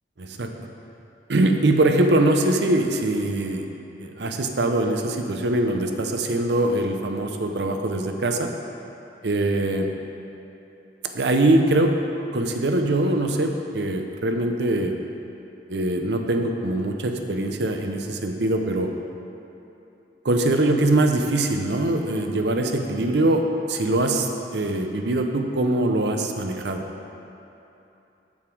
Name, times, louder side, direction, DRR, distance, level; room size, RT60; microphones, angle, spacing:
voice 1, 0.2-0.5 1.3-3.7 4.0-8.5 9.2-9.9 11.1-11.9 12.3-15.0 15.7-18.9 20.2-26.8, right 1 dB, 75° right, 4 dB, 0.7 m, -22 dB
7.9 x 7.2 x 4.6 m, 2.9 s
head